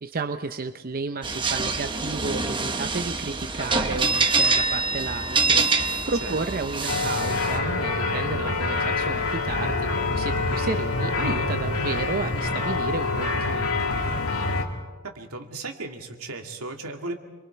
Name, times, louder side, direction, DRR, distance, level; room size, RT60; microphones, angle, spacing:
voice 1, 0.0-13.9, right 3 dB, 40° right, 8 dB, 0.6 m, -32 dB
sound 1, 1.2-7.5, right 3 dB, 20° right, 1.1 m, -25 dB
sound 2, 6.9-14.6, left 3 dB, 80° left, 2.5 m, -26 dB
voice 2, 15.0-17.1, right 2 dB, 85° right, 3 dB, 2.3 m, -35 dB
30.0 x 23.5 x 4.6 m, 1.3 s
head